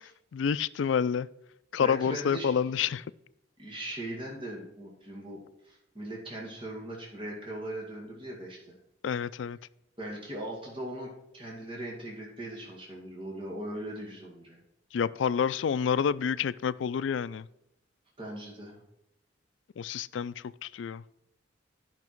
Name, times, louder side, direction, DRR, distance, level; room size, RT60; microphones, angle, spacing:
voice 1, 0.3-1.3 1.7-3.0 9.0-9.6 14.9-17.5 19.8-21.0, left 7 dB, 85° left, 0.4 m, -28 dB
voice 2, 1.8-2.6 3.6-8.7 10.0-14.6 18.2-18.8, right 1 dB, 30° right, 2.2 m, -39 dB
10.5 x 5.9 x 4.6 m
head